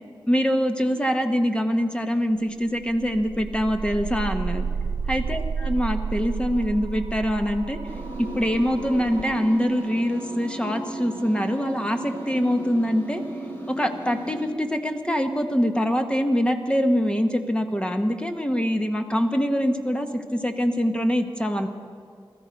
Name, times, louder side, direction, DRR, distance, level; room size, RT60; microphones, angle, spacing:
voice 1, 0.3-4.6 5.1-7.8 8.2-13.2 13.7-21.7, equal, 10° left, 5 dB, 1.1 m, -24 dB
sound 1, 2.7-12.6, right 5 dB, 55° right, 0.8 m, -32 dB
sound 2, 7.9-14.4, right 1 dB, 30° left, 3.1 m, -35 dB
20.5 x 13.5 x 5.2 m, 2.1 s
wide cardioid pair, 85°, 9 cm